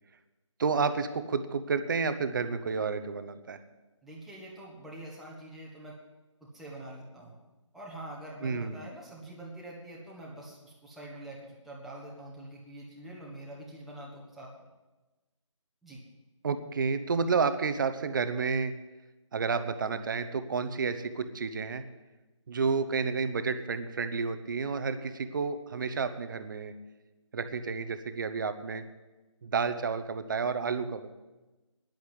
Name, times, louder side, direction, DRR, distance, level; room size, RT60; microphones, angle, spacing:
voice 1, 0.6-3.6 8.4-8.8 16.4-18.7 19.3-21.8 22.5-26.7 27.3-28.8 29.4-31.1, right 5 dB, 40° right, 10 dB, 0.9 m, -30 dB
voice 2, 4.0-6.0 6.4-7.4 7.7-14.5 15.8-16.0, right 1 dB, ahead, -5 dB, 1.4 m, -45 dB
10.5 x 8.5 x 9.3 m, 1.1 s
figure-of-eight pair, 155°, 16 cm